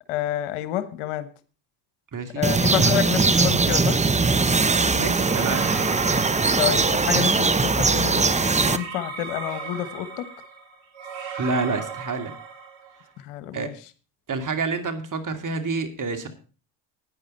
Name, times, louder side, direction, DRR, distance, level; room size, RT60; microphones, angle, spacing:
voice 1, 0.1-1.3 2.3-4.0 6.6-8.3 8.6-10.3 13.2-13.7, left 13 dB, 75° left, 13 dB, 1.3 m, -28 dB
voice 2, 2.1-2.5 4.9-5.7 11.4-12.3 13.5-13.7 14.3-16.3, right 4 dB, 40° right, 7 dB, 2.6 m, -28 dB
sound 1, 2.4-8.8, right 4 dB, 15° right, 0.8 m, -20 dB
sound 2, 5.1-7.3 8.1-13.0, right 5 dB, 65° right, 3.5 m, -36 dB
11.0 x 9.7 x 5.4 m, 0.36 s
supercardioid pair, 65°, 50 cm